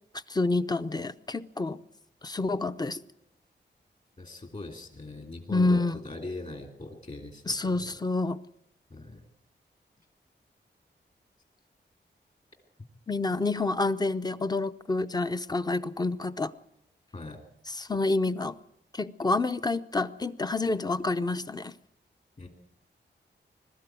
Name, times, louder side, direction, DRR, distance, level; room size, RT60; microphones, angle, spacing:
voice 1, 0.3-1.8 2.2-3.0 5.5-6.0 7.5-8.4 13.1-16.5 17.7-18.6 18.9-21.7, left 3 dB, 20° left, 0.7 m, -28 dB
voice 2, 4.2-7.9 8.9-9.2 17.1-17.4 22.4-22.5, left 2 dB, 40° left, 3.0 m, -41 dB
22.0 x 13.0 x 9.2 m
wide cardioid pair, 130°, 19 cm